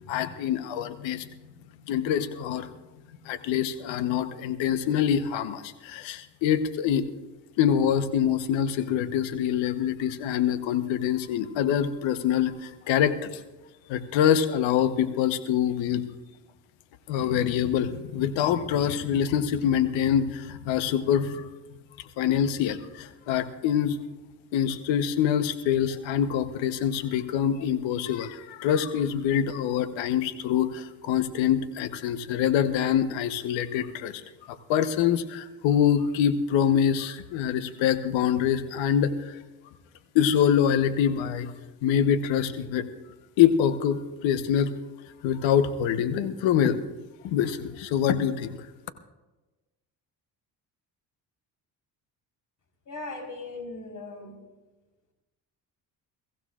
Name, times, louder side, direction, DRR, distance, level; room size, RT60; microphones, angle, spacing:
voice 1, 0.1-1.3 1.9-2.7 3.2-7.0 7.6-13.4 13.9-16.0 17.1-21.5 22.2-24.0 24.5-34.2 34.5-39.4 40.1-41.5 41.8-42.9 43.4-44.7 45.2-46.8 47.2-48.6, left 9 dB, 80° left, 10 dB, 1.1 m, -25 dB
voice 2, 52.9-54.4, left 2 dB, 40° left, 2 dB, 4.4 m, -38 dB
23.0 x 15.0 x 2.5 m, 1.1 s
supercardioid pair, 70°, 45 cm